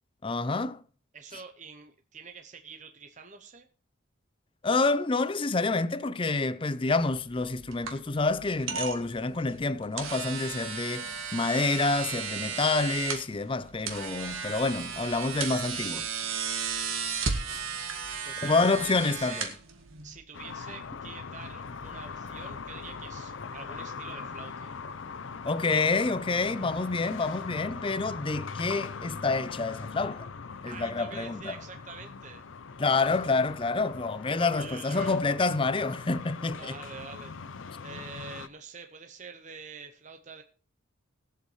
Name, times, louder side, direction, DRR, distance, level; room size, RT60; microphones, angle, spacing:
voice 1, 0.2-0.8 4.6-16.1 17.5-17.6 18.4-19.5 25.4-30.3 30.6-31.6 32.8-36.8, left 3 dB, 25° left, 0.5 m, -28 dB
voice 2, 1.1-3.7 18.2-19.4 20.0-24.7 30.7-32.5 34.4-35.2 36.5-37.4 37.8-40.4, right 5 dB, 35° right, 0.8 m, -46 dB
sound 1, 6.9-20.2, right 6 dB, 85° right, 1.9 m, -35 dB
sound 2, 20.3-38.5, left 5 dB, 70° left, 0.6 m, -41 dB
20.5 x 7.8 x 3.2 m
head